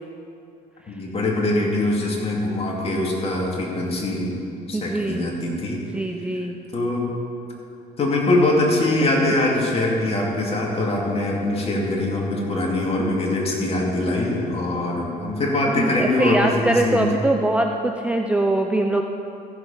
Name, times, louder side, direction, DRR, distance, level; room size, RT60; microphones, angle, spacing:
voice 1, 0.9-4.4 4.7-5.8 6.7-7.1 8.0-17.1, left 2 dB, 35° left, -2 dB, 2.5 m, -23 dB
voice 2, 4.7-5.2 5.9-6.6 15.7-19.0, right 1 dB, 5° right, 3 dB, 0.5 m, -22 dB
15.0 x 7.0 x 5.6 m, 2.7 s
cardioid pair, 110°, 17 cm